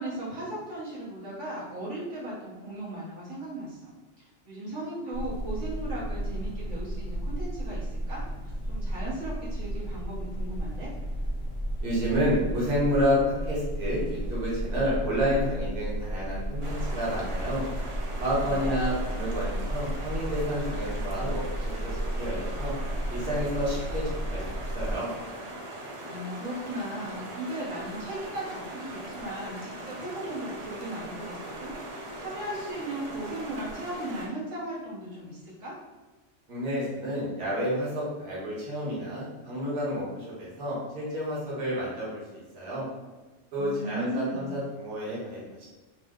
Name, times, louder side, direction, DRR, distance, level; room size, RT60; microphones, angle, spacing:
voice 1, 0.0-10.9 18.5-18.7 26.1-35.7 43.6-44.6, right 1 dB, 75° right, -8 dB, 1.4 m, -37 dB
sound 1, 5.1-24.9, right 1 dB, 40° left, 0.6 m, -33 dB
voice 2, 11.8-17.6 18.2-22.7 23.1-25.1 36.5-42.9 43.5-45.6, equal, 60° right, -7 dB, 1.3 m, -30 dB
sound 2, 16.6-34.3, right 1 dB, 45° right, 0.4 m, -40 dB
3.2 x 2.1 x 3.5 m, 1.2 s
omnidirectional pair, 1.2 m